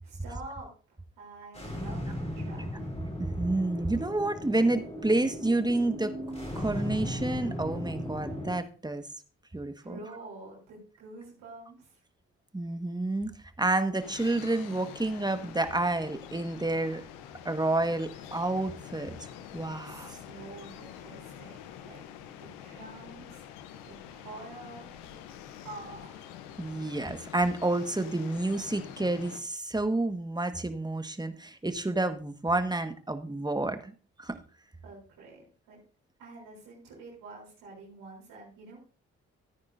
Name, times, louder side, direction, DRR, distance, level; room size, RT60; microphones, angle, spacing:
voice 1, 0.0-0.7 1.2-2.9 9.8-12.0 19.8-22.1 22.4-23.5 23.9-24.9 25.6-26.3 34.8-35.8 36.2-39.0, right 2 dB, 80° right, -5 dB, 3.6 m, -47 dB
sound 1, 1.5-8.6, equal, 20° left, 3.9 m, -37 dB
voice 2, 3.2-6.1 6.5-9.1 9.5-10.0 12.5-13.3 13.6-17.0 17.4-19.1 19.5-20.2 26.6-33.9 34.2-34.4, right 2 dB, 15° right, 8 dB, 1.5 m, -29 dB
sound 2, 14.0-29.4, left 9 dB, 90° left, 0.8 m, -46 dB
14.5 x 9.6 x 2.6 m, 0.38 s
hypercardioid pair, 40°, 32 cm